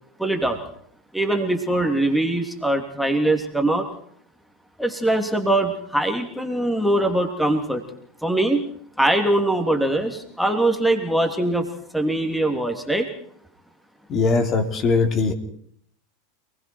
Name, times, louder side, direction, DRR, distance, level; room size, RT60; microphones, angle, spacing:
voice 1, 0.2-0.6 1.1-3.9 4.8-7.8 8.2-8.6 9.0-11.7 11.9-13.1, right 1 dB, ahead, 5 dB, 3.2 m, -22 dB
voice 2, 14.1-15.3, left 4 dB, 35° left, 6 dB, 3.6 m, -20 dB
28.5 x 20.0 x 4.7 m, 0.63 s
hypercardioid pair, 90°, 0 cm